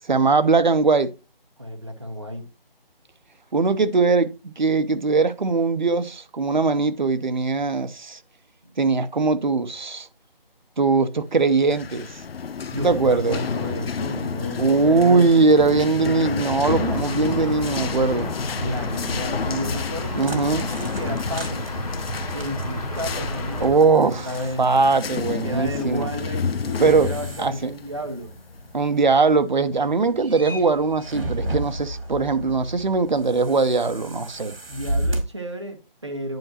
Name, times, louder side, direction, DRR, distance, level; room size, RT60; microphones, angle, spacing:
voice 1, 0.1-1.1 3.5-8.2 8.8-10.1 10.8-12.2 12.8-13.4 14.6-18.3 20.2-20.7 23.6-24.3 24.6-26.1 26.8-27.1 27.4-27.7 28.7-34.5, right 4 dB, 50° right, 0.7 m, -20 dB
voice 2, 1.6-2.4 8.6-8.8 12.7-15.3 18.5-21.7 22.3-24.7 25.4-28.3 34.7-36.4, equal, 30° right, 1.0 m, -32 dB
sound 1, 11.5-28.9, left 6 dB, 80° left, 0.6 m, -31 dB
sound 2, 16.7-23.7, left 2 dB, 40° left, 1.8 m, -31 dB
sound 3, 19.7-35.2, right 1 dB, 80° right, 2.0 m, -35 dB
10.5 x 4.9 x 2.8 m
figure-of-eight pair, 175°, 29 cm